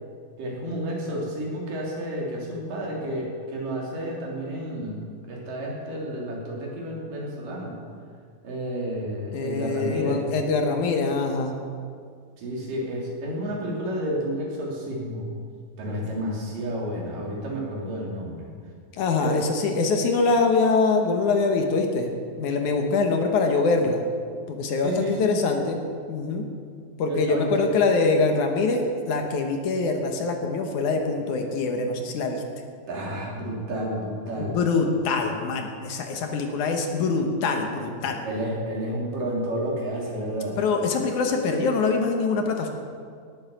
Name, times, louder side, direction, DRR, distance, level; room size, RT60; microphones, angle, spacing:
voice 1, 0.4-7.8 8.4-10.3 12.4-15.3 15.8-18.5 19.2-19.4 24.8-25.4 27.1-27.8 32.9-34.6 38.2-40.6, equal, 75° right, -3 dB, 4.7 m, -30 dB
voice 2, 9.3-11.5 18.9-22.1 22.4-24.0 24.5-25.8 26.1-26.5 27.0-32.4 34.4-38.2 40.6-42.7, left 4 dB, 70° left, 4 dB, 2.6 m, -24 dB
18.5 x 8.8 x 7.1 m, 2.2 s
omnidirectional pair, 3.9 m